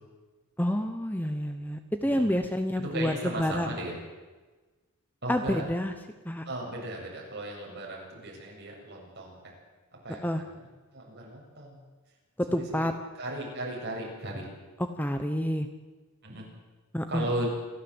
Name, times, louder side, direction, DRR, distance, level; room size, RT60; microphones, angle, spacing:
voice 1, 0.6-3.7 5.3-5.9 6.2-6.5 10.2-10.4 12.4-12.9 15.0-15.7 16.9-17.5, equal, 10° left, 7 dB, 1.0 m, -28 dB
voice 2, 2.9-4.0 5.2-5.6 6.5-9.4 10.0-10.6 10.9-11.8 12.5-12.9 13.2-14.5 16.2-16.5 17.1-17.5, right 1 dB, 50° right, -2 dB, 7.3 m, -36 dB
27.5 x 13.5 x 8.0 m, 1.3 s
head